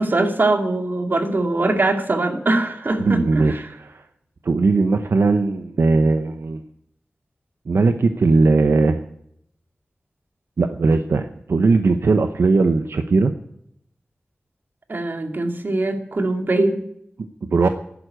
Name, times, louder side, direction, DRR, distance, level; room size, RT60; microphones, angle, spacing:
voice 1, 0.0-3.7 14.9-16.8, right 2 dB, 55° right, 5 dB, 2.2 m, -22 dB
voice 2, 3.0-3.5 3.8-4.0 4.4-6.6 7.7-9.0 10.6-13.3 17.5-17.7, right 3 dB, 85° right, 8 dB, 0.8 m, -18 dB
11.5 x 11.0 x 9.1 m, 0.74 s
wide cardioid pair, 75°, 4 cm